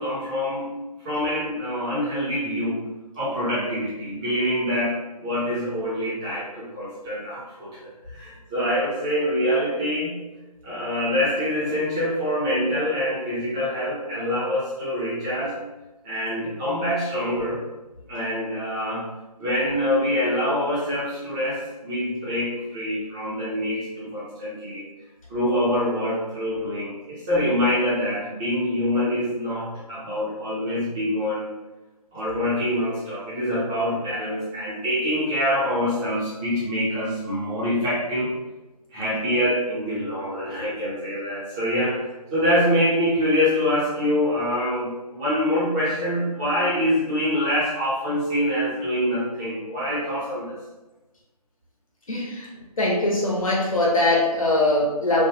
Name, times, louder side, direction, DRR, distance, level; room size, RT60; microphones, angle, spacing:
voice 1, 0.0-2.8 3.1-10.2 10.6-15.5 16.0-17.6 18.1-19.1 19.4-24.9 25.3-31.5 32.1-38.3 38.9-50.6, equal, 10° right, -9 dB, 0.6 m, -25 dB
voice 2, 52.1-52.5 52.8-55.3, left 1 dB, 55° left, -3 dB, 1.0 m, -21 dB
3.1 x 2.2 x 3.1 m, 1.1 s
figure-of-eight pair, 150°, 20 cm